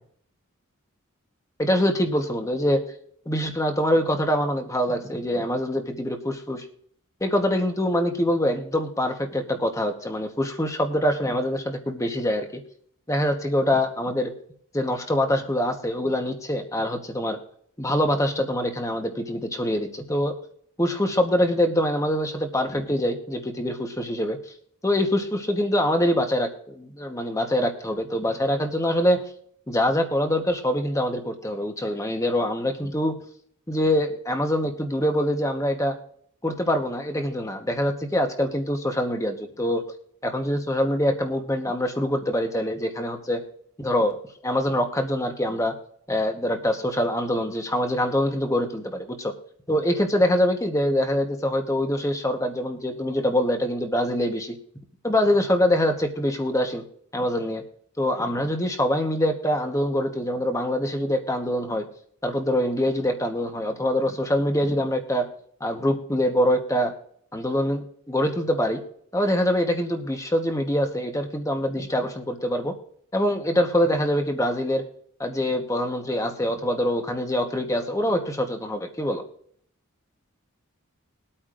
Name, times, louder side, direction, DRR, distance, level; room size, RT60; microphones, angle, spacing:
voice 1, 1.6-2.8 3.3-6.6 7.2-12.6 13.1-14.3 14.7-17.4 17.8-20.3 20.8-24.4 24.8-29.2 29.7-33.2 33.7-36.0 36.4-39.8 40.2-43.4 43.8-44.2 44.4-45.7 46.1-49.3 49.7-54.5 55.0-56.8 57.1-57.6 58.0-61.9 62.2-65.3 65.6-66.9 67.3-68.8 69.1-72.7 73.1-74.8 75.2-79.2, left 1 dB, 15° left, 5 dB, 1.1 m, -24 dB
21.5 x 8.7 x 2.5 m, 0.63 s
head